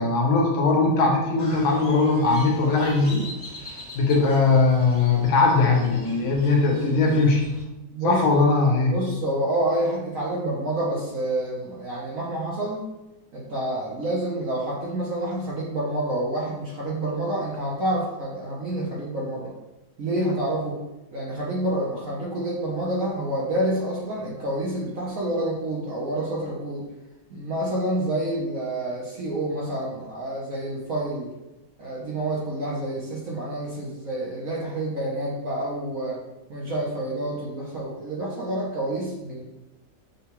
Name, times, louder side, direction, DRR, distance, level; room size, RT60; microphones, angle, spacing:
voice 1, 0.0-3.2 3.7-7.4 8.0-8.9, left 3 dB, 85° left, 0 dB, 1.6 m, -20 dB
Crow, 1.4-7.6, left 4 dB, 35° left, 0.6 m, -38 dB
voice 2, 7.9-8.4 8.9-12.8 13.3-19.5 20.0-20.8 21.1-26.9 27.3-31.3 31.8-36.2 36.5-39.4, right 1 dB, 60° right, -5 dB, 0.9 m, -28 dB
6.5 x 2.2 x 2.9 m, 0.97 s
omnidirectional pair, 2.1 m